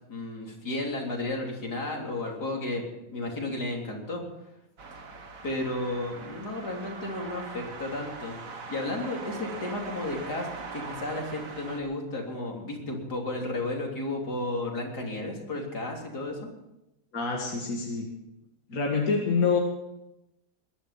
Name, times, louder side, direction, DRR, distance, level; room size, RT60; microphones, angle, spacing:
voice 1, 0.1-4.3 5.4-16.5, left 2 dB, 75° left, 0 dB, 4.0 m, -33 dB
sound 1, 4.8-11.8, right 4 dB, 55° right, 2.0 m, -41 dB
voice 2, 17.1-18.1 18.7-19.6, left 5 dB, 60° left, 0 dB, 2.4 m, -26 dB
21.5 x 11.5 x 5.8 m, 0.91 s
omnidirectional pair, 1.7 m